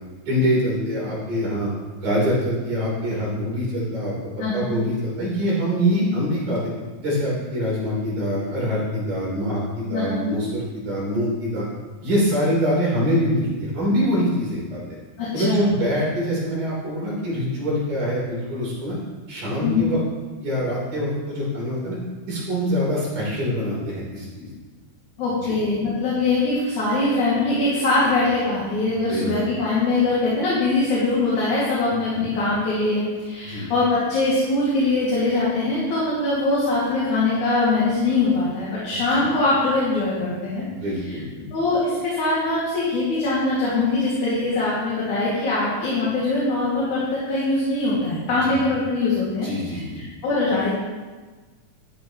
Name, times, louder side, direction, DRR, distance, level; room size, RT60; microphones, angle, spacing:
voice 1, 0.3-1.7 2.0-6.6 7.0-11.7 12.0-14.8 15.3-19.0 19.3-20.0 20.4-22.0 22.3-24.5 25.4-25.6 29.1-29.6 32.1-32.2 33.4-33.7 38.9-39.3 40.7-41.5 48.4-48.6 49.4-50.0, equal, 80° right, -6 dB, 5.3 m, -24 dB
voice 2, 4.4-4.7 9.9-10.2 15.2-15.7 19.6-19.9 25.2-40.6 41.5-50.7, left 2 dB, 75° left, -9 dB, 3.8 m, -22 dB
12.5 x 9.6 x 3.1 m, 1.3 s
omnidirectional pair, 3.4 m